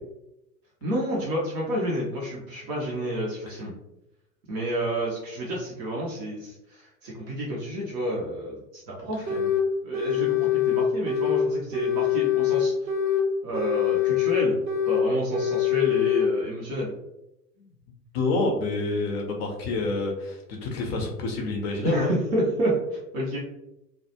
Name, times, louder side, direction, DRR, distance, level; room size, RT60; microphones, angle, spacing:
voice 1, 0.8-3.7 4.5-9.5 9.8-12.7 13.4-14.6 14.9-16.9 21.8-23.4, equal, 25° right, -3 dB, 0.4 m, -30 dB
sound 1, 9.3-9.6 9.9-11.4 11.7-13.2 13.5-15.0 15.3-16.3, left 10 dB, 85° right, 0.6 m, -24 dB
voice 2, 18.1-22.2, left 2 dB, 40° left, 1 dB, 0.6 m, -27 dB
2.2 x 2.1 x 2.7 m, 0.87 s
figure-of-eight pair, 90°, 49 cm